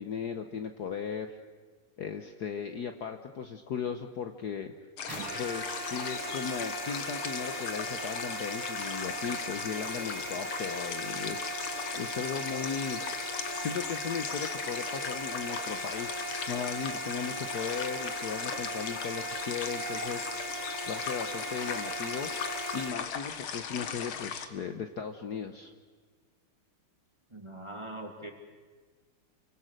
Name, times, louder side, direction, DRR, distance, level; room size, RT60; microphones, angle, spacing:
voice 1, 0.0-1.4 2.0-4.7 5.4-13.0 13.6-20.3 20.9-22.3 22.7-25.7, left 6 dB, 55° left, 6 dB, 1.4 m, -37 dB
sound 1, 5.0-24.5, left 7 dB, 75° left, 2.1 m, -38 dB
sound 2, 5.1-22.9, right 2 dB, 75° right, 3.4 m, -39 dB
voice 2, 27.3-28.3, right 1 dB, 15° right, 3 dB, 2.6 m, -42 dB
29.0 x 24.0 x 6.6 m, 1.4 s
omnidirectional pair, 2.3 m